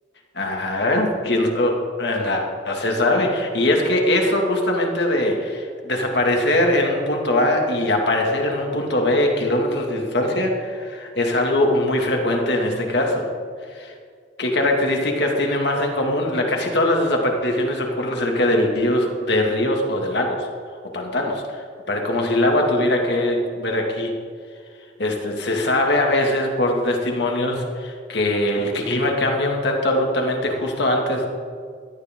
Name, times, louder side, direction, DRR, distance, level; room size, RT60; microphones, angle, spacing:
voice 1, 0.3-13.3 13.7-13.9 14.4-20.5 20.9-24.2 25.0-31.3, left 1 dB, 60° left, 1 dB, 2.3 m, -21 dB
18.0 x 13.0 x 3.8 m, 2.1 s
head